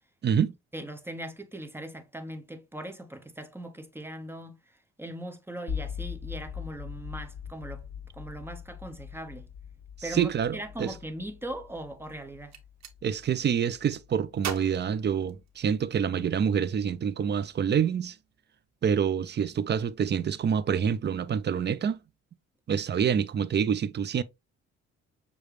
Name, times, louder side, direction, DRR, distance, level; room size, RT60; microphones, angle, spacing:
voice 1, 0.7-4.6 5.0-7.8 8.1-9.5 10.0-12.6, right 1 dB, 10° right, 0.9 m, -40 dB
sound 1, 5.7-15.7, left 7 dB, 40° left, 2.5 m, -41 dB
voice 2, 10.0-10.9 13.0-18.2 18.8-22.0 22.7-24.2, right 7 dB, 35° right, 0.5 m, -27 dB
Gunshot gunfire, 12.4-13.0 14.4-15.9, right 8 dB, 60° right, 1.0 m, -39 dB
6.5 x 2.3 x 3.1 m
cardioid pair, 90°, 30 cm